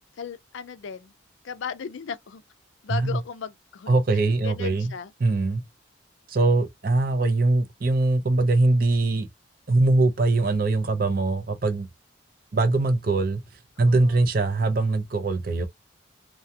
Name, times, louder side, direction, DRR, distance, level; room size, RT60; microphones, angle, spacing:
voice 1, 0.2-1.1 1.4-2.4 2.8-4.0 4.4-5.1 13.9-14.2, left 6 dB, 75° left, 0.4 m, -36 dB
voice 2, 3.9-4.9 5.2-5.6 6.3-9.3 9.7-11.9 12.5-13.4 13.8-15.6, right 2 dB, 45° right, 0.5 m, -22 dB
2.3 x 2.2 x 2.7 m
head